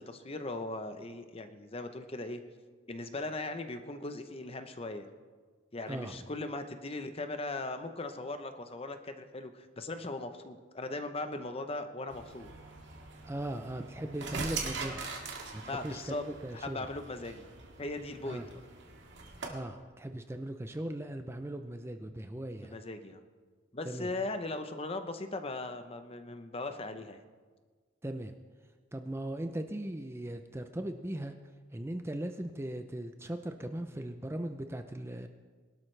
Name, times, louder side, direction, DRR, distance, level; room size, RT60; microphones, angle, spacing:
voice 1, 0.0-2.4 2.9-5.1 5.7-12.5 15.6-16.2 16.5-17.4 17.8-18.6 22.6-23.2 23.7-27.2, left 2 dB, 30° left, 8 dB, 0.8 m, -39 dB
sound 1, 12.1-19.5, right 4 dB, 65° right, 1.9 m, -42 dB
voice 2, 13.2-15.1 15.5-16.9 18.2-18.5 19.5-22.8 23.8-24.1 28.0-28.3 28.9-31.3 31.7-35.3, right 1 dB, 15° right, 7 dB, 0.5 m, -38 dB
22.0 x 12.0 x 3.3 m, 1.5 s
head